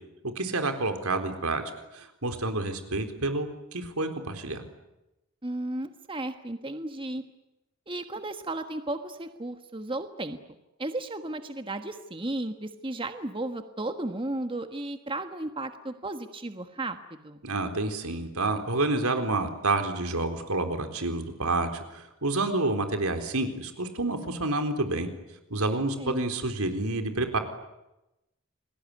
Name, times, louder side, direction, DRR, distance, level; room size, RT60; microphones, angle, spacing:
voice 1, 0.4-1.6 1.9-4.6 17.4-25.1 25.5-27.4, right 2 dB, 85° right, 7 dB, 4.1 m, -29 dB
voice 2, 5.4-7.2 7.9-10.4 10.8-17.4 26.0-26.2, right 2 dB, 25° right, 8 dB, 1.4 m, -34 dB
29.0 x 21.0 x 9.7 m, 0.93 s
head